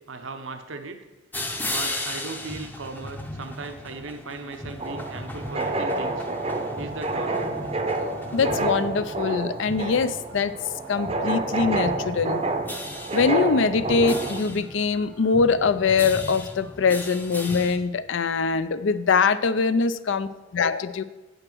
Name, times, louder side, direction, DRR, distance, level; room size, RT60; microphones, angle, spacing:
voice 1, 0.1-1.0 1.6-6.3 6.8-7.5, right 3 dB, 80° right, 7 dB, 0.8 m, -37 dB
sound 1, 1.3-17.8, left 1 dB, 10° left, 0.6 m, -37 dB
sound 2, 4.8-14.4, right 2 dB, 30° right, 0.6 m, -28 dB
voice 2, 8.3-10.5 10.9-12.4 13.1-21.0, left 5 dB, 75° left, 13 dB, 0.5 m, -23 dB
8.7 x 8.0 x 4.5 m, 1.2 s
head